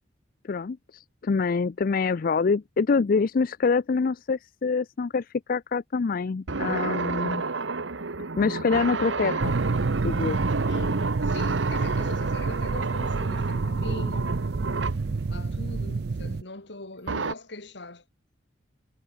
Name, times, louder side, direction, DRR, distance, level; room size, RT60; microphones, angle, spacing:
voice 1, 0.4-7.4 8.4-9.5 10.0-10.4, left 4 dB, 50° left, 0.4 m, -25 dB
sound 1, 6.5-15.1 17.1-17.3, right 3 dB, 75° right, 1.2 m, -30 dB
sound 2, 9.4-16.4, right 4 dB, 55° right, 0.5 m, -29 dB
voice 2, 10.7-14.3 15.3-18.0, left 2 dB, 65° left, 2.8 m, -41 dB
head